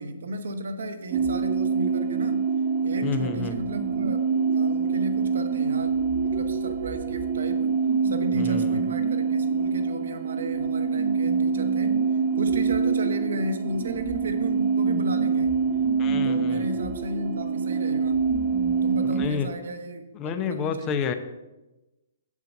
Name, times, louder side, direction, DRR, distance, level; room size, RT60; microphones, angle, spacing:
voice 1, 0.0-2.4 2.8-4.2 4.5-7.7 8.0-12.0 12.4-15.5 16.2-18.2 18.8-20.1 20.5-21.1, right 1 dB, 65° right, 7 dB, 1.1 m, -34 dB
sound 1, 1.1-19.3, right 5 dB, 40° right, 0.8 m, -25 dB
voice 2, 3.0-3.6 8.4-8.9 16.0-16.7 19.0-19.5 20.2-21.1, left 6 dB, 30° left, 9 dB, 0.9 m, -30 dB
7.8 x 7.3 x 5.3 m, 1.0 s
figure-of-eight pair, 125°, 0 cm